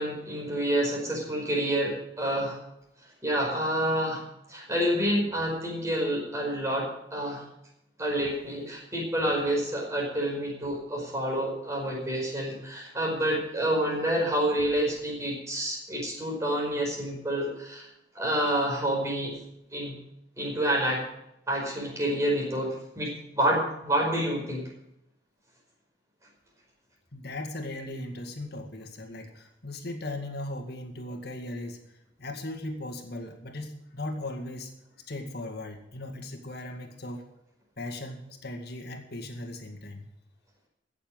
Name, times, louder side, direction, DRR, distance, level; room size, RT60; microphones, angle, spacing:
voice 1, 0.0-2.6 3.2-4.2 4.5-7.4 8.0-17.9 18.1-19.3 19.7-19.9 20.4-21.0 21.5-24.6, right 1 dB, 15° right, -2 dB, 5.0 m, -28 dB
voice 2, 27.1-31.8 32.2-34.7 35.1-37.3 37.8-40.1, left 1 dB, 55° left, 4 dB, 2.1 m, -38 dB
16.0 x 7.2 x 7.9 m, 0.82 s
head